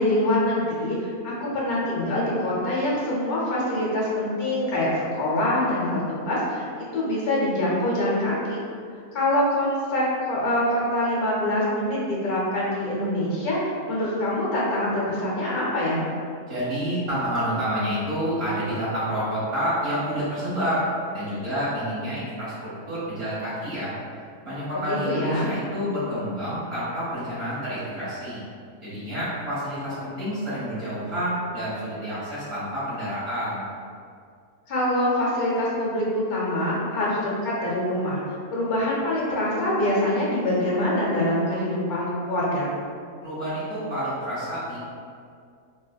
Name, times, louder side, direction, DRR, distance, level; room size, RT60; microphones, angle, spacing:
voice 1, 0.0-8.6 9.1-16.0 24.7-25.5 34.7-38.2 38.5-42.7, left 1 dB, 70° left, -6 dB, 1.3 m, -25 dB
voice 2, 16.5-20.9 21.1-23.9 24.4-28.4 28.8-33.6 43.2-44.8, equal, 40° right, -12 dB, 1.6 m, -28 dB
3.9 x 2.5 x 2.3 m, 2.2 s
omnidirectional pair, 1.6 m